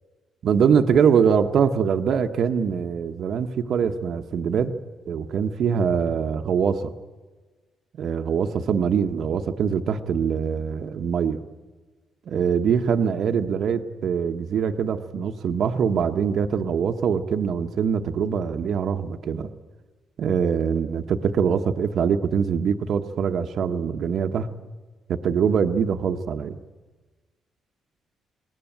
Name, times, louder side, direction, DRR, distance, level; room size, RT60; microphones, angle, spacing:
voice 1, 0.4-4.7 5.1-6.9 8.0-11.4 12.3-19.5 20.2-24.5 25.1-26.6, right 7 dB, 65° right, 5 dB, 1.1 m, -23 dB
20.5 x 18.0 x 9.1 m, 1.3 s
cardioid pair, 90°, 0 cm